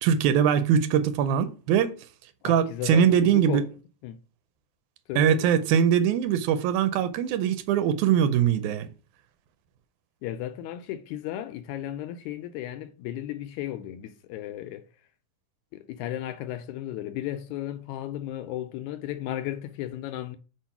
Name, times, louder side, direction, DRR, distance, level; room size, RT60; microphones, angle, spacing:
voice 1, 0.0-1.9 2.4-3.6 5.2-8.9, right 8 dB, 80° right, 2.0 m, -22 dB
voice 2, 2.4-3.6 4.0-4.2 5.1-5.5 10.2-14.8 15.7-20.4, left 12 dB, 80° left, 1.8 m, -35 dB
4.6 x 4.4 x 5.7 m
omnidirectional pair, 3.6 m